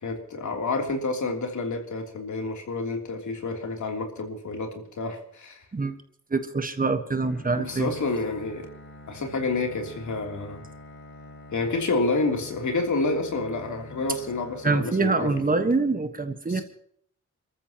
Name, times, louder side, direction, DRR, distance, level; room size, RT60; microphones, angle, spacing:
voice 1, 0.0-5.6 7.6-8.7 9.1-10.6 11.5-15.6 16.5-16.6, left 3 dB, 70° left, 2 dB, 3.3 m, -29 dB
voice 2, 6.3-7.9 14.1-14.2 14.6-16.6, right 3 dB, 30° right, 8 dB, 1.4 m, -25 dB
Bowed string instrument, 7.1-15.4, left 2 dB, 40° left, 3.3 m, -46 dB
28.5 x 14.0 x 3.0 m, 0.64 s
wide cardioid pair, 125°, 30 cm